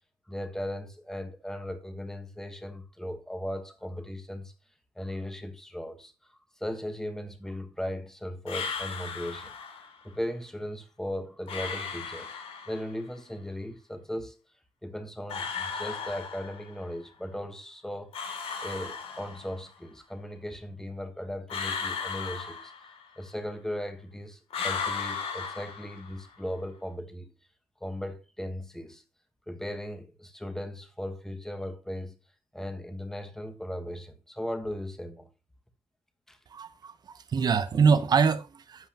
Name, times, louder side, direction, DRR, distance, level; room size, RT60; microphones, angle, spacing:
voice 1, 0.3-4.5 5.0-9.5 10.0-12.3 12.7-14.4 14.8-18.1 18.6-22.7 23.2-27.3 27.8-29.0 29.5-32.2 32.5-35.3 36.3-36.4, equal, 5° left, 1.2 m, -37 dB
sound 1, 8.5-9.9 11.5-13.0 15.3-16.8 18.1-19.7 21.5-23.2 24.5-26.3, left 6 dB, 80° left, 2.7 m, -36 dB
voice 2, 36.5-38.9, right 5 dB, 45° right, 0.9 m, -25 dB
11.0 x 8.1 x 2.9 m
wide cardioid pair, 155°, 10 cm